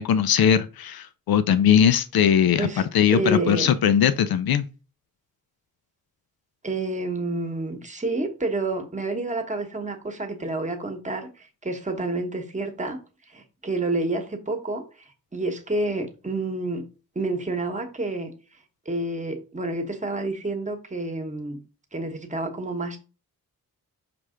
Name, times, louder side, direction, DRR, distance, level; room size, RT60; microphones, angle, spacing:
voice 1, 0.0-2.7 2.9-4.6, left 8 dB, 90° left, 0.6 m, -20 dB
voice 2, 2.6-3.7 6.6-13.0 13.3-14.8 15.3-16.8 17.1-18.3 18.8-21.6 21.9-23.0, right 2 dB, 20° right, 1.0 m, -29 dB
6.0 x 3.3 x 4.9 m
wide cardioid pair, 165°, 35 cm